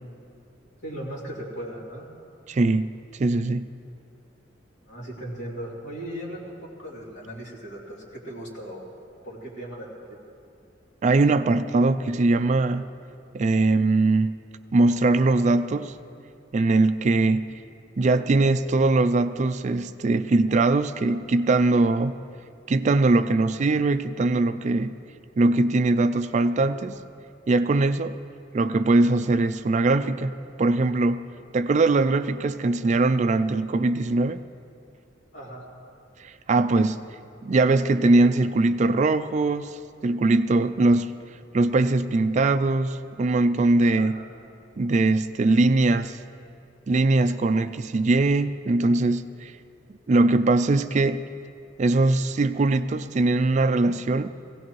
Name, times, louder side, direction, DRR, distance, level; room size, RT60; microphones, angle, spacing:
voice 1, 0.8-2.1 4.9-8.8 9.2-10.2 35.3-35.7 43.9-44.2, right 1 dB, 70° left, -4 dB, 2.9 m, -37 dB
voice 2, 2.5-2.9 3.2-3.7 11.0-12.9 13.3-14.3 14.7-15.9 16.5-17.5 18.0-22.1 22.7-24.9 25.4-27.0 27.5-28.2 28.5-31.3 31.5-34.4 36.2-37.0 37.4-41.1 41.5-44.2 44.8-46.2 46.9-49.5 50.1-51.2 51.8-54.3, right 2 dB, 40° right, 11 dB, 0.3 m, -21 dB
18.0 x 17.0 x 3.1 m, 2.4 s
head